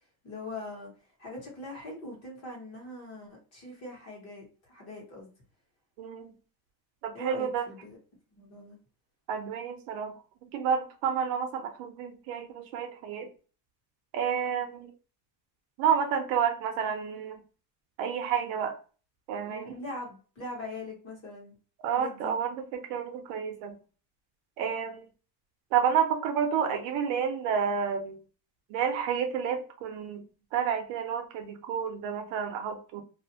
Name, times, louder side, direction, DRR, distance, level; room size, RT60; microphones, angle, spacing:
voice 1, 0.2-0.9 1.2-5.3 7.1-8.0 8.3-8.8 19.4-21.6 21.9-22.3, left 2 dB, 30° left, 1.0 m, -42 dB
voice 2, 6.0-6.3 7.0-7.7 9.3-10.1 10.4-13.3 14.1-14.9 15.8-17.4 18.0-18.8 19.3-19.7 21.8-23.7 24.6-25.1 25.7-28.2 28.7-30.2 30.5-33.0, right 7 dB, 75° right, 0.7 m, -30 dB
2.4 x 2.1 x 2.7 m
cardioid pair, 170°, 47 cm